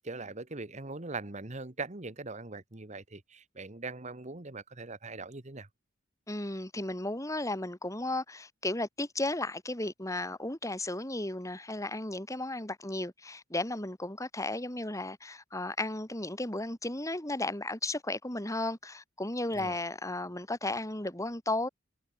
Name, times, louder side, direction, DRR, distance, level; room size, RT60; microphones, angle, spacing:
voice 1, 0.0-5.7 19.5-19.8, right 3 dB, 35° right, 1.5 m, -41 dB
voice 2, 6.3-21.7, left 2 dB, 15° left, 3.1 m, -34 dB
head